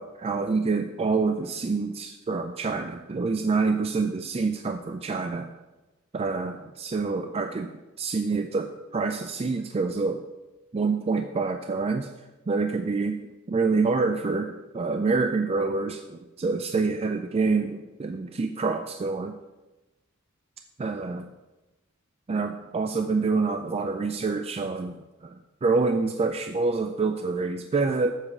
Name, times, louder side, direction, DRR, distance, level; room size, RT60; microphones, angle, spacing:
voice 1, 0.0-5.5 6.1-7.7 8.0-10.2 10.7-12.1 12.5-13.2 13.5-19.3 20.8-21.3 22.3-25.0 25.2-28.1, right 4 dB, 30° right, 7 dB, 0.4 m, -27 dB
7.3 x 4.8 x 7.2 m, 1.1 s
head